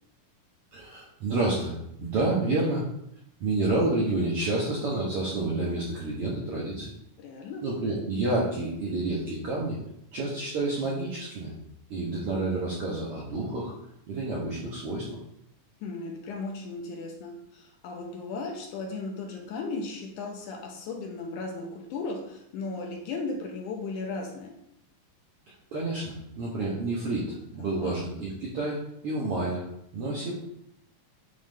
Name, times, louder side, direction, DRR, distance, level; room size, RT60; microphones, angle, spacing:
voice 1, 0.7-2.8 3.4-6.9 7.6-9.8 10.1-11.5 11.9-13.7 14.1-15.1 25.5-29.6 29.9-30.3, right 2 dB, 70° right, -5 dB, 1.4 m, -29 dB
voice 2, 7.2-7.7 15.8-24.5 27.6-27.9, left 3 dB, 75° left, 2 dB, 2.0 m, -36 dB
9.1 x 3.2 x 3.5 m, 0.77 s
omnidirectional pair, 3.9 m